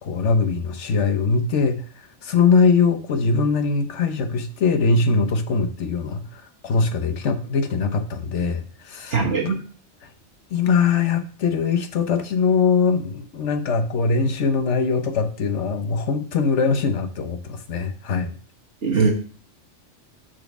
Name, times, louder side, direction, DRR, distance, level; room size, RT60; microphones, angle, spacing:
voice 1, 0.0-1.8 2.2-9.5 10.5-18.3, left 5 dB, 75° left, 7 dB, 1.2 m, -22 dB
voice 2, 9.1-9.6 18.8-19.1, right 4 dB, 70° right, -2 dB, 1.6 m, -20 dB
6.3 x 4.2 x 5.9 m, 0.42 s
omnidirectional pair, 1.2 m